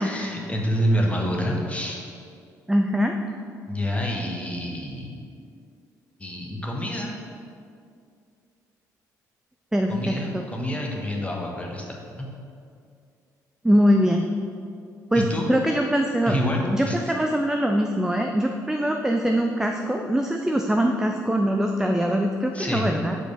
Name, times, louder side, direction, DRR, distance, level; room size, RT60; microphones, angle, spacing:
voice 1, 0.0-2.0 3.7-5.2 6.2-7.2 9.9-12.3 15.1-15.5 16.3-17.0 22.5-22.9, equal, 15° left, -1 dB, 1.2 m, -27 dB
voice 2, 2.7-3.1 9.7-10.4 13.6-14.3 15.1-16.4 16.7-23.2, equal, 5° right, 3 dB, 0.4 m, -22 dB
5.1 x 4.4 x 4.9 m, 2.4 s
figure-of-eight pair, 45°, 9 cm